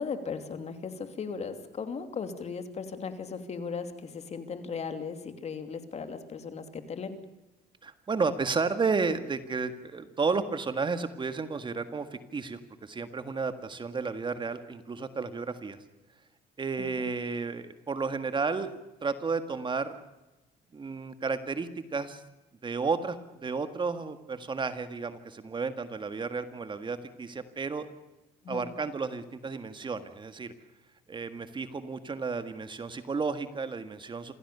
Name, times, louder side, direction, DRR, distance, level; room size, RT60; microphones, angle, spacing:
voice 1, 0.0-7.2 16.8-16.9 28.4-28.7, left 5 dB, 40° left, 8 dB, 2.8 m, -37 dB
voice 2, 7.8-15.8 16.6-20.0 20.7-22.2 22.6-27.9 28.5-30.5 31.1-34.3, right 4 dB, 30° right, 10 dB, 1.7 m, -32 dB
27.5 x 16.0 x 6.9 m, 1.0 s
cardioid pair, 110°, 17 cm